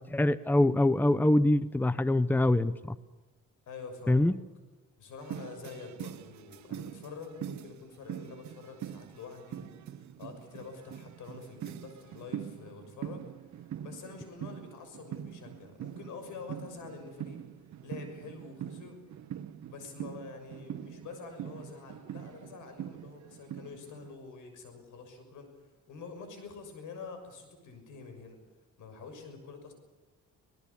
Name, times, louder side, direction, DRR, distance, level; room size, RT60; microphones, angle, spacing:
voice 1, 0.0-3.0 4.1-4.4, left 1 dB, 5° left, 16 dB, 0.8 m, -24 dB
voice 2, 3.7-4.3 5.0-13.3 13.6-17.4 17.8-19.0 19.7-28.4 28.8-29.7, left 4 dB, 80° left, 7 dB, 6.5 m, -46 dB
sound 1, 5.2-24.1, right 10 dB, 70° right, 1.4 m, -43 dB
26.5 x 19.0 x 7.1 m, 1.2 s
cardioid pair, 90°, 30 cm